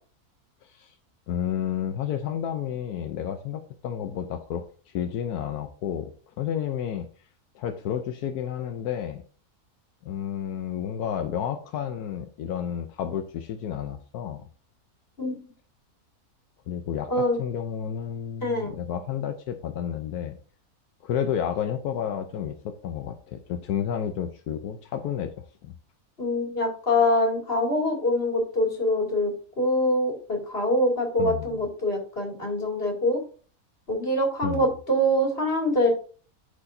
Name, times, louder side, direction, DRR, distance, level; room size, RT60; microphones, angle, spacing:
voice 1, 1.3-4.6 4.9-6.1 6.4-7.1 7.5-9.2 10.0-14.4 16.7-20.4 21.0-25.3 25.6-25.7 31.2-31.6 34.4-34.7, left 9 dB, 85° left, 7 dB, 1.2 m, -31 dB
voice 2, 18.4-18.8 26.2-33.2 33.9-35.9, left 1 dB, 40° left, 0 dB, 2.6 m, -24 dB
12.0 x 4.9 x 2.6 m, 0.39 s
omnidirectional pair, 1.6 m